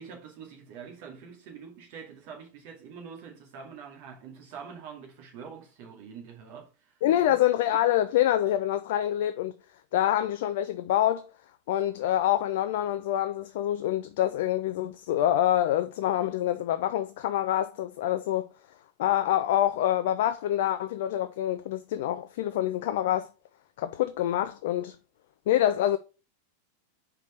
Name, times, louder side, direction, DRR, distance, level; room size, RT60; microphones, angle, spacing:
voice 1, 0.0-7.4, right 6 dB, 45° right, 2.2 m, -45 dB
voice 2, 7.0-9.6 9.9-11.3 11.7-18.5 19.0-23.3 23.8-25.0 25.5-26.0, left 12 dB, 55° left, 0.4 m, -26 dB
5.1 x 4.6 x 5.0 m
figure-of-eight pair, 90°, 0 cm